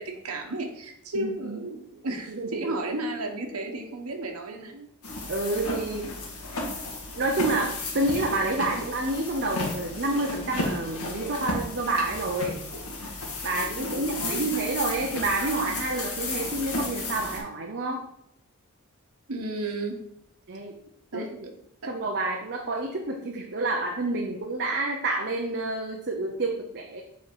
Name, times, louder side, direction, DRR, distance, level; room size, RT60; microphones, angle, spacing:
voice 1, 0.0-4.9 13.8-14.5 19.3-20.0 21.1-21.3 21.8-21.9, right 2 dB, 80° right, 2 dB, 1.2 m, -33 dB
voice 2, 1.1-1.6 2.3-2.8 5.3-6.1 7.1-12.6 13.4-18.0 20.5-20.7 21.1-21.5 21.9-27.0, right 2 dB, 50° right, 1 dB, 0.8 m, -29 dB
sound 1, 5.0-17.4, left 2 dB, 85° left, 1.9 m, -34 dB
7.4 x 4.6 x 4.6 m, 0.77 s
head